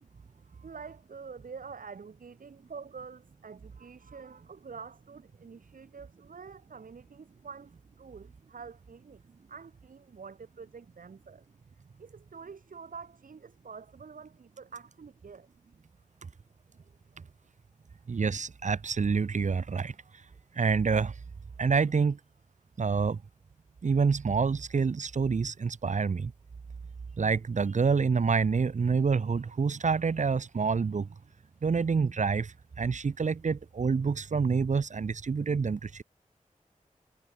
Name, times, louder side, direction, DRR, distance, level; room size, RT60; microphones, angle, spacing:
voice 1, 0.1-9.2 9.5-11.5 12.0-15.5, right 5 dB, 90° right, 1.5 m, -47 dB
voice 2, 18.1-19.9 20.6-21.1 21.6-22.2 22.8-23.2 23.8-26.3 27.2-31.1 31.6-36.0, right 5 dB, 60° right, 0.8 m, -27 dB
wide cardioid pair, 65°, 14 cm